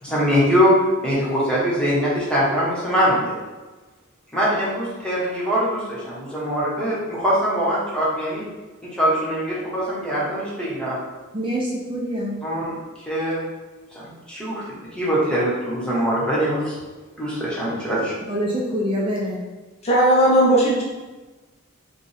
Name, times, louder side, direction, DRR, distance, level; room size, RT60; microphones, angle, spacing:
voice 1, 0.0-0.7 1.0-3.4 4.3-8.4 8.9-11.0 12.4-12.7 13.1-13.4 13.9-14.6 14.9-16.8 17.2-18.1, equal, 5° left, -8 dB, 1.1 m, -22 dB
voice 2, 11.3-12.4 18.3-19.4, equal, 25° right, -4 dB, 0.5 m, -25 dB
voice 3, 19.8-20.8, right 1 dB, 30° left, -4 dB, 0.6 m, -16 dB
4.9 x 2.3 x 3.4 m, 1.2 s
head